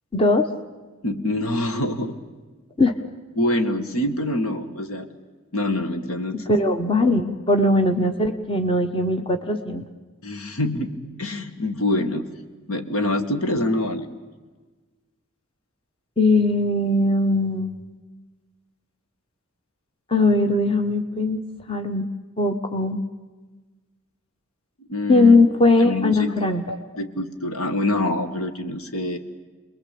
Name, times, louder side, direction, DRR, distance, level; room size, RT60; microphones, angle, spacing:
voice 1, 0.1-0.5 2.8-2.9 6.5-9.8 16.2-17.8 20.1-21.4 21.7-22.1 22.4-23.0 25.1-26.6, left 2 dB, 25° left, 7 dB, 1.2 m, -19 dB
voice 2, 1.0-2.1 3.4-5.1 5.5-6.5 10.2-10.9 11.2-12.3 12.7-14.1 24.8-25.4 25.8-29.2, left 1 dB, 80° left, 8 dB, 2.0 m, -25 dB
29.0 x 21.5 x 8.6 m, 1.3 s
head